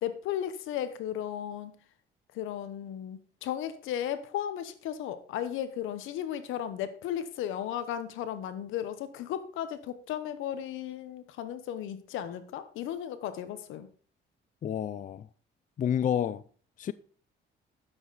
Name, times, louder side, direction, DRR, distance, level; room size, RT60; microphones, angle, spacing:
voice 1, 0.0-1.8 2.3-13.9, left 10 dB, 90° left, 1.0 m, -35 dB
voice 2, 14.6-15.3 15.8-16.4 16.8-16.9, left 9 dB, 40° left, 0.4 m, -29 dB
9.9 x 7.1 x 4.0 m
cardioid pair, 90°, 20 cm